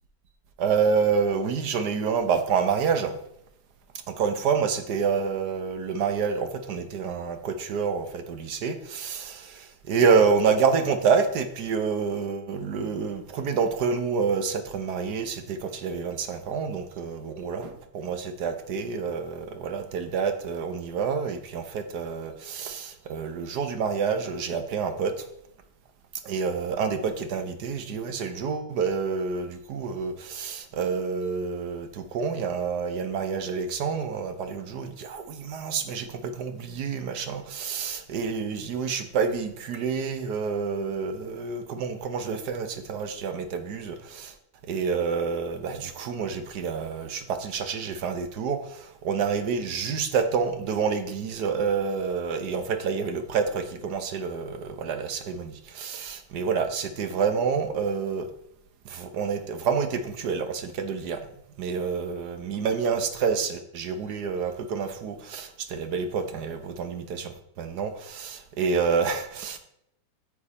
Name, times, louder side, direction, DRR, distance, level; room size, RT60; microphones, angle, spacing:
voice 1, 0.6-3.1 4.2-25.1 26.2-44.3 44.7-58.3 58.8-61.2 61.6-69.6, right 5 dB, 70° right, 1.5 m, -28 dB
9.2 x 7.3 x 4.2 m
omnidirectional pair, 1.8 m